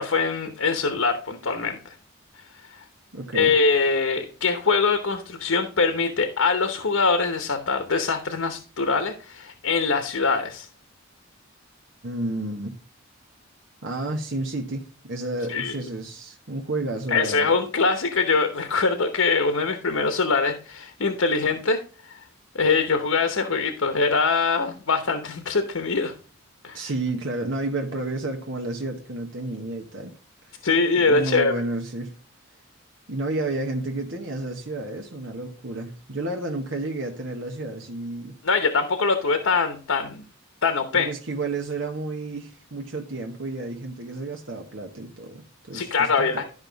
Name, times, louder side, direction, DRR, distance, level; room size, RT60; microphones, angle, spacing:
voice 1, 0.0-1.9 2.7-2.8 3.3-10.7 15.5-15.8 17.1-22.2 22.5-26.1 26.6-26.8 30.6-31.5 38.4-40.2 40.6-41.1 45.7-46.4, left 4 dB, 85° left, 1.0 m, -23 dB
voice 2, 3.1-3.5 12.0-12.8 13.8-17.5 26.7-30.2 30.4-30.7 31.1-32.1 33.1-38.4 40.9-46.4, right 2 dB, 70° right, 1.1 m, -31 dB
12.0 x 5.5 x 3.9 m
head